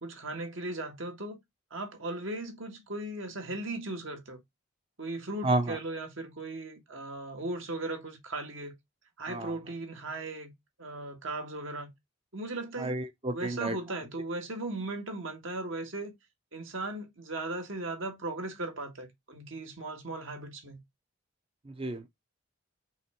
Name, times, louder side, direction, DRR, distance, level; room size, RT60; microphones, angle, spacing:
voice 1, 0.0-1.4 1.7-4.4 5.0-8.7 9.2-10.5 10.8-11.9 12.3-12.9 13.3-16.1 16.5-20.8, right 2 dB, 70° right, 1.7 m, -37 dB
voice 2, 5.4-5.8 9.3-9.5 12.8-13.8 21.7-22.0, right 2 dB, 25° right, 0.5 m, -31 dB
5.6 x 3.8 x 4.4 m
head